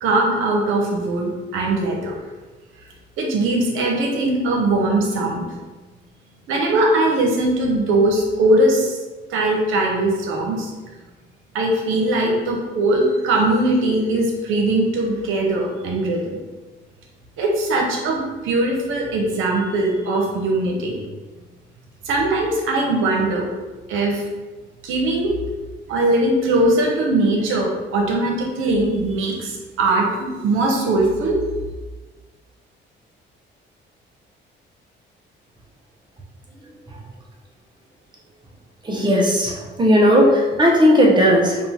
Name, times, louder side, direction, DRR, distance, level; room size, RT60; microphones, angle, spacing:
voice 1, 0.0-2.2 3.2-5.5 6.5-9.0 9.3-10.7 11.5-16.4 17.4-21.0 22.0-23.5 23.9-24.2 24.8-25.3 25.9-31.4, right 2 dB, 90° right, 0 dB, 0.8 m, -20 dB
voice 2, 38.9-41.6, equal, 20° right, -1 dB, 0.9 m, -16 dB
3.6 x 2.4 x 4.2 m, 1.2 s
cardioid pair, 90°, 20 cm